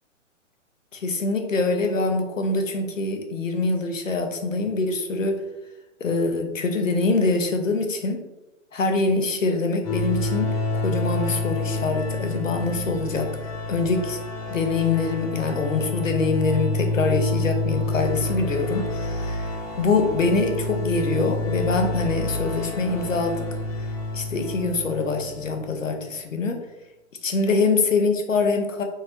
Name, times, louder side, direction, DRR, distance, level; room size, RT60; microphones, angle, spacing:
voice 1, 0.9-5.4 6.0-8.2 8.7-14.2 14.5-19.5 19.8-23.4 24.1-26.6 27.2-28.8, left 3 dB, 85° left, 5 dB, 0.9 m, -24 dB
sound 1, 9.8-25.8, left 2 dB, 25° left, 1.1 m, -28 dB
4.2 x 4.0 x 2.5 m, 1.0 s
figure-of-eight pair, 130°, 38 cm